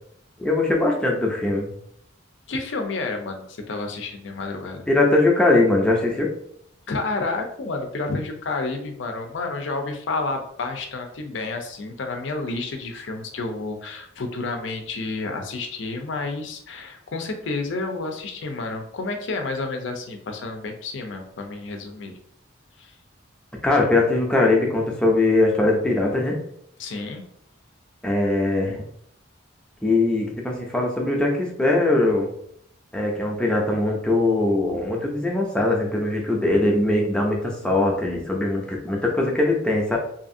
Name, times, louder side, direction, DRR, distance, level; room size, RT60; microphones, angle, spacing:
voice 1, 0.4-1.7 4.9-6.3 23.6-26.4 28.0-28.8 29.8-32.3 32.9-40.0, left 2 dB, 5° left, -1 dB, 0.5 m, -21 dB
voice 2, 2.5-4.8 6.9-22.1 22.8-22.9 26.8-27.2, left 3 dB, 65° left, 5 dB, 0.5 m, -30 dB
2.7 x 2.5 x 2.6 m, 0.69 s
head